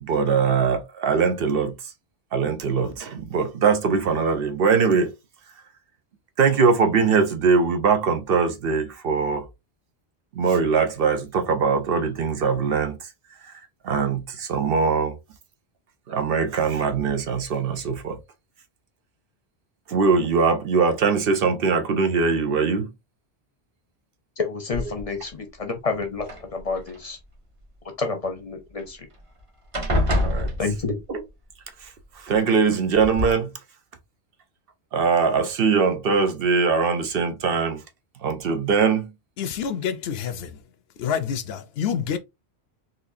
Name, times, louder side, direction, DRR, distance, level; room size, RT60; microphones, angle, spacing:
voice 1, 0.0-1.9 2.3-5.1 6.4-9.5 10.3-13.1 13.4-15.2 16.1-18.2 19.9-22.9 30.2-30.5 31.1-31.2 31.8-33.5 34.9-37.8 38.2-39.1, right 5 dB, 65° right, 0.8 m, -22 dB
voice 2, 24.4-27.2 28.0-29.1 30.6-31.0, left 4 dB, 40° left, 0.7 m, -29 dB
sound 1, 24.7-25.3 26.2-27.0 28.8-28.9 29.2-29.4 29.7-31.2 32.3-32.4 33.0-33.3, left 1 dB, 30° right, 0.9 m, -26 dB
voice 3, 39.4-40.5 41.0-42.2, left 7 dB, 75° left, 0.8 m, -27 dB
4.1 x 2.5 x 2.6 m
omnidirectional pair, 1.1 m